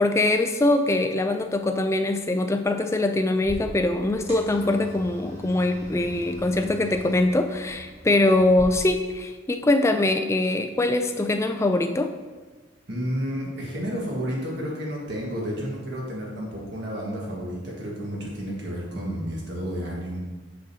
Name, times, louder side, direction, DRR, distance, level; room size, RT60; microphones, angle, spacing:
voice 1, 0.0-12.1, left 2 dB, 15° left, 6 dB, 0.3 m, -23 dB
sound 1, 3.4-8.6, equal, 30° right, 1.8 m, -41 dB
voice 2, 12.9-20.2, equal, 55° right, -3 dB, 1.5 m, -31 dB
6.3 x 6.3 x 2.8 m, 1.3 s
head